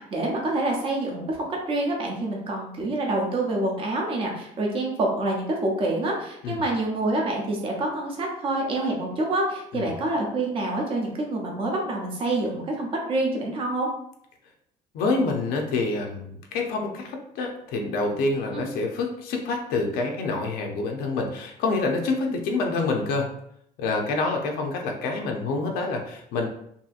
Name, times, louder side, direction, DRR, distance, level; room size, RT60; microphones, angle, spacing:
voice 1, 0.1-13.9 18.5-18.6, right 2 dB, 35° right, 0 dB, 0.6 m, -27 dB
voice 2, 14.9-23.3 23.8-26.5, left 3 dB, 80° left, 2 dB, 0.5 m, -27 dB
2.7 x 2.6 x 2.4 m, 0.72 s
cardioid pair, 170°, 15 cm